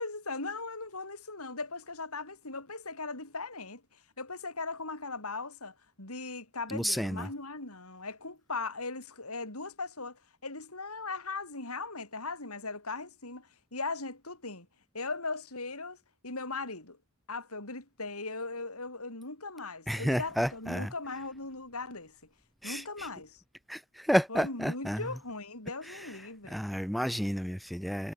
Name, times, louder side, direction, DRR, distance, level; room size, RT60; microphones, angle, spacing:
voice 1, 0.0-14.7 14.9-16.0 16.2-17.0 17.3-22.2 22.6-23.4 24.3-26.6, left 3 dB, 90° left, 7.9 m, -39 dB
voice 2, 6.7-7.3 19.9-20.9 22.6-23.1 23.7-25.1 26.5-28.1, equal, ahead, 3.8 m, -31 dB
head